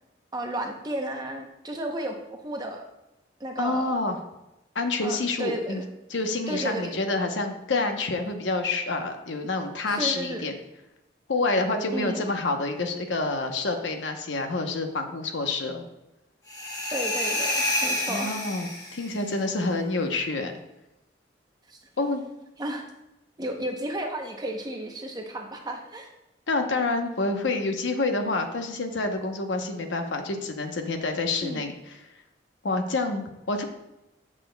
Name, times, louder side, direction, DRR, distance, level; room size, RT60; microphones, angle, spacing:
voice 1, 0.3-2.1 2.4-2.8 3.4-4.0 5.0-5.8 6.5-7.0 9.9-10.4 11.9-12.3 16.9-18.4 21.7-21.8 22.6-22.8 23.4-26.1 31.4-31.6, right 1 dB, 20° right, 3 dB, 0.7 m, -33 dB
voice 2, 3.6-4.2 4.7-5.8 6.1-10.5 11.3-15.9 18.1-20.5 22.0-22.2 26.5-31.7 32.6-33.6, left 3 dB, 85° left, 5 dB, 0.8 m, -28 dB
sound 1, 16.5-19.2, left 1 dB, 20° left, 1.2 m, -28 dB
9.1 x 6.1 x 2.2 m, 0.94 s
head